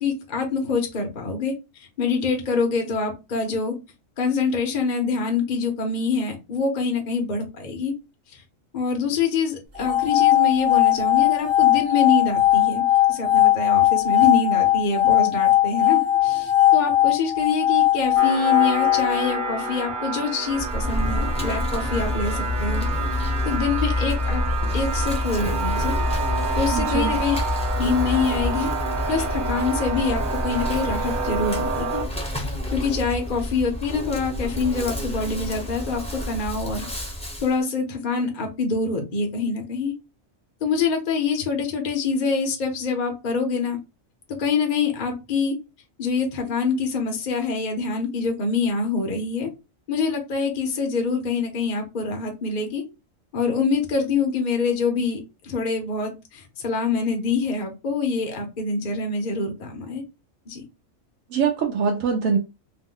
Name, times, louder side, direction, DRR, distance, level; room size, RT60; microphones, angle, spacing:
voice 1, 0.0-1.5 2.0-3.7 4.2-7.9 8.3-8.4 8.7-12.8 13.1-22.9 23.4-24.4 24.7-25.9 26.6-27.4 27.7-28.7 29.1-32.0 32.7-36.9 37.4-39.9 40.6-43.8 44.4-45.5 46.0-49.5 49.9-52.8 53.3-60.0 60.5-60.6, left 4 dB, 45° left, 0.7 m, -25 dB
sound 1, 9.8-19.9, left 13 dB, 40° right, 0.9 m, -19 dB
sound 2, 18.2-32.0, right 5 dB, 55° right, 0.6 m, -29 dB
Insect, 20.5-37.5, left 2 dB, 5° left, 0.7 m, -28 dB
voice 2, 26.7-27.2 61.3-62.4, right 6 dB, 75° right, 1.0 m, -23 dB
2.8 x 2.1 x 3.6 m
omnidirectional pair, 1.4 m